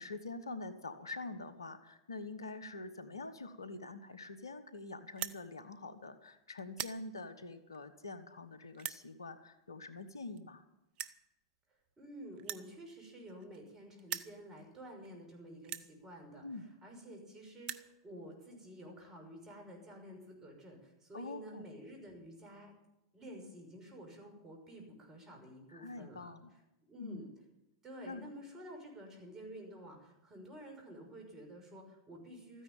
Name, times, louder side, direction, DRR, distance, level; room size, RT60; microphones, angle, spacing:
voice 1, 0.0-10.6 16.4-16.7 21.1-21.6 25.7-26.5 27.0-27.2 28.1-28.2, left 3 dB, 85° left, 11 dB, 1.3 m, -45 dB
sound 1, 5.1-5.4 6.1-6.3 6.6-7.0 7.7-7.8 8.7-9.0 10.1-10.2 10.4-10.5 11.0-11.2 12.4-13.7 14.0-14.3 15.0-15.1 15.6-15.9 16.8-16.9 17.1-17.2 17.5-17.9, right 11 dB, 40° right, 0.8 m, -42 dB
voice 2, 12.0-22.7 23.1-26.3 26.8-27.3 27.8-32.6, equal, 20° right, 2 dB, 6.1 m, -51 dB
14.0 x 9.9 x 9.0 m, 0.93 s
hypercardioid pair, 100°, 2 cm